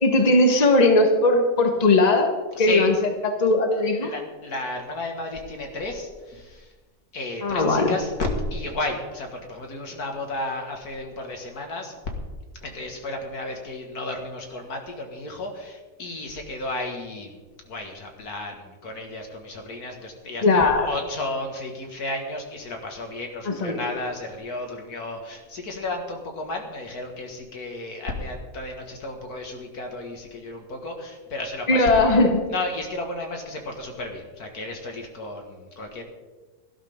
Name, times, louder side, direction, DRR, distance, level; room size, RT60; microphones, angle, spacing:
voice 1, 0.0-2.3 2.6-2.9 3.2-4.1 7.4-8.0 20.4-20.9 23.4-23.8 31.7-32.4, left 2 dB, 25° left, 4 dB, 1.5 m, -19 dB
voice 2, 2.6-2.9 4.0-6.7 7.1-11.9 12.6-17.4 17.7-32.2 32.5-36.0, left 2 dB, 80° left, 3 dB, 2.4 m, -33 dB
17.5 x 12.0 x 3.7 m, 1.3 s
omnidirectional pair, 1.6 m